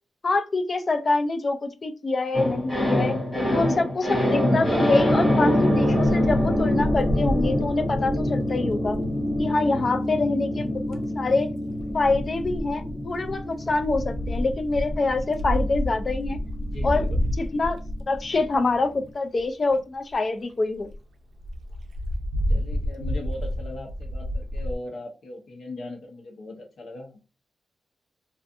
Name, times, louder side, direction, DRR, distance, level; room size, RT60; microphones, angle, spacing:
voice 1, 0.2-3.2 3.5-9.0 9.4-11.5 11.9-16.4 16.8-17.1 17.4-17.8 18.1-20.9, left 3 dB, 35° left, 8 dB, 0.3 m, -25 dB
sound 1, 2.3-18.7 19.0-19.1, left 1 dB, 15° left, 0.9 m, -26 dB
Wind, 5.9-9.5 10.6-11.1 11.8-18.7 19.4-19.5 19.7-19.8 20.1-20.2 20.5-20.6 20.8-21.0 21.4-24.7, equal, 70° right, 0.4 m, -30 dB
voice 2, 9.6-10.0 16.6-17.2 22.5-27.2, left 2 dB, 55° left, 1 dB, 0.8 m, -38 dB
2.4 x 2.4 x 2.6 m, 0.31 s
wide cardioid pair, 155°, 0 cm